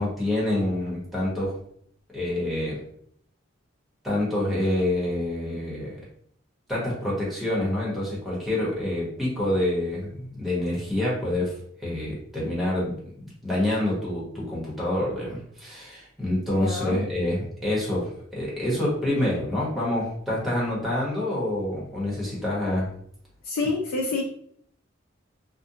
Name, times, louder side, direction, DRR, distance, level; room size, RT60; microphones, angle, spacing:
voice 1, 0.0-1.6 2.1-2.8 4.0-6.0 6.7-11.5 11.8-13.0 13.2-22.9, left 1 dB, ahead, -7 dB, 0.9 m, -27 dB
voice 2, 16.6-17.0 23.4-24.2, left 3 dB, 85° left, 0 dB, 0.4 m, -27 dB
2.5 x 2.1 x 2.7 m, 0.65 s
head